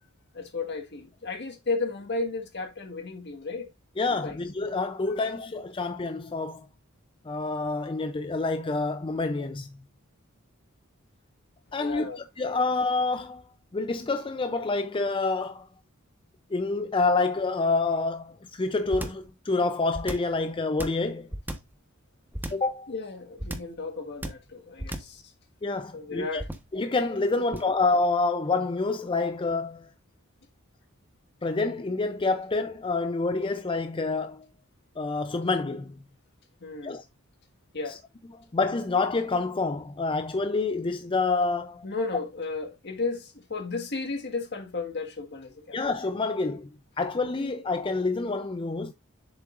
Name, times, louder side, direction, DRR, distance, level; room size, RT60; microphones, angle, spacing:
voice 1, 0.3-3.7 4.1-4.4 5.2-5.3 11.8-12.2 22.9-25.2 25.9-26.5 36.6-37.0 37.7-38.0 41.8-45.8, left 3 dB, 55° left, 1.7 m, -34 dB
voice 2, 4.0-6.7 7.3-9.7 11.7-13.4 13.7-15.7 16.5-21.3 22.5-22.9 25.6-26.4 26.7-29.9 31.4-34.5 35.0-36.0 36.8-37.1 37.9-38.0 38.5-41.9 45.7-48.9, left 3 dB, 25° left, 0.5 m, -27 dB
sound 1, 18.9-19.3 19.9-20.4 20.8-21.8 22.3-22.7 23.4-23.8 24.2-24.5 24.8-25.2 26.4-26.8 27.5-27.8, right 1 dB, 10° right, 1.1 m, -35 dB
7.5 x 7.3 x 2.5 m
head